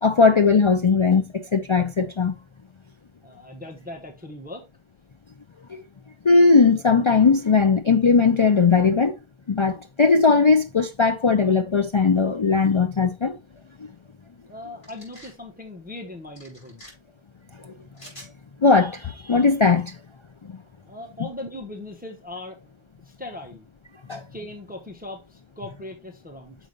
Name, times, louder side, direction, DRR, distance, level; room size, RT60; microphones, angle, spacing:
voice 1, 0.0-2.4 5.7-5.8 6.2-9.2 9.5-13.4 18.6-20.0 24.1-24.2, left 4 dB, 45° left, 0.4 m, -18 dB
voice 2, 3.2-4.7 14.5-16.8 20.8-22.6 23.0-23.7 24.3-26.6, left 1 dB, 10° right, 1.1 m, -39 dB
sound 1, 14.8-15.4 16.4-16.9 17.9-18.3, equal, 70° left, 4.9 m, -46 dB
6.4 x 5.1 x 3.9 m
omnidirectional pair, 1.1 m